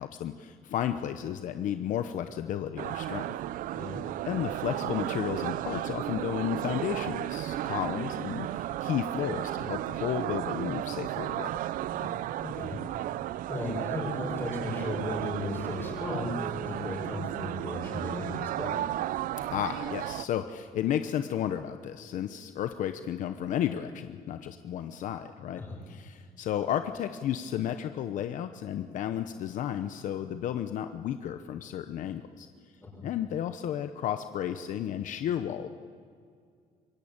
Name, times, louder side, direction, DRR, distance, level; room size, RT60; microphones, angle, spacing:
voice 1, 0.0-3.3 4.2-11.5 19.5-32.5 33.0-35.7, left 10 dB, 60° left, 9 dB, 0.9 m, -33 dB
sound 1, 2.8-20.2, right 13 dB, 65° right, 0.6 m, -34 dB
voice 2, 12.4-12.8 13.5-18.7 25.5-25.8 32.9-33.0, left 2 dB, 15° left, -1 dB, 6.2 m, -35 dB
26.0 x 23.0 x 8.8 m, 2.2 s
cardioid pair, 180°, 15 cm